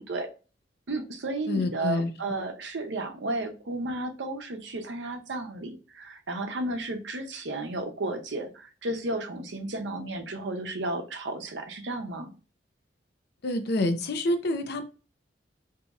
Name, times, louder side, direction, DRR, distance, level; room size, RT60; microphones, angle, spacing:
voice 1, 0.9-12.3, right 2 dB, 80° right, 6 dB, 0.7 m, -33 dB
voice 2, 1.5-2.1 13.4-14.8, left 2 dB, 65° left, 8 dB, 0.5 m, -27 dB
4.0 x 2.7 x 2.4 m, 0.34 s
head